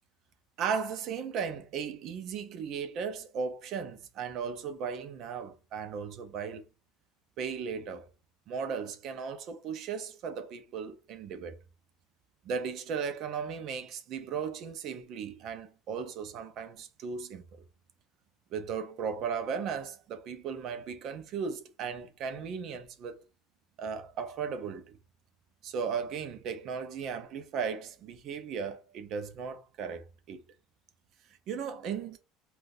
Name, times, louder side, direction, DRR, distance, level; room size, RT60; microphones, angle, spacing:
voice 1, 0.6-6.7 7.4-8.1 8.5-11.6 12.4-17.4 18.5-23.2 23.8-25.0 25.6-30.4 31.5-32.2, right 6 dB, 50° right, 0.6 m, -36 dB
3.7 x 2.3 x 2.6 m
cardioid pair, 135°, 0 cm